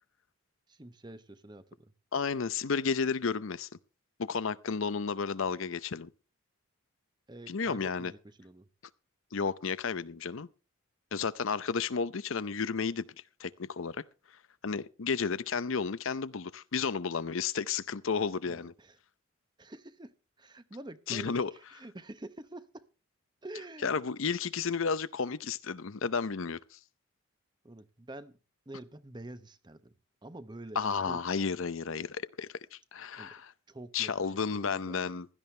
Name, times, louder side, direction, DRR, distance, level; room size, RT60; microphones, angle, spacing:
voice 1, 0.7-1.9 7.3-8.7 18.5-19.0 19.6-20.1 20.4-22.8 23.4-24.0 27.6-28.4 28.7-29.9 30.2-31.2 33.2-33.4 33.7-35.0, right 1 dB, 20° right, 0.8 m, -47 dB
voice 2, 2.1-3.7 4.2-6.1 7.5-8.1 9.3-10.5 11.1-13.1 13.4-14.0 14.6-18.7 21.1-21.5 23.8-26.8 30.8-33.5 33.9-35.3, left 5 dB, 65° left, 0.6 m, -32 dB
16.0 x 13.0 x 3.3 m
head